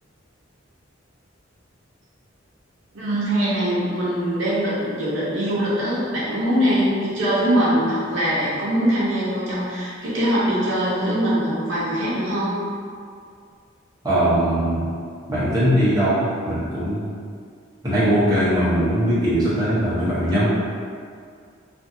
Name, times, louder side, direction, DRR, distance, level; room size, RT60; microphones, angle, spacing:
voice 1, 2.9-12.5, equal, 70° right, -9 dB, 0.7 m, -22 dB
voice 2, 14.0-14.9 15.3-17.0 17.8-20.5, equal, 20° right, -12 dB, 0.8 m, -20 dB
2.5 x 2.5 x 2.6 m, 2.2 s
head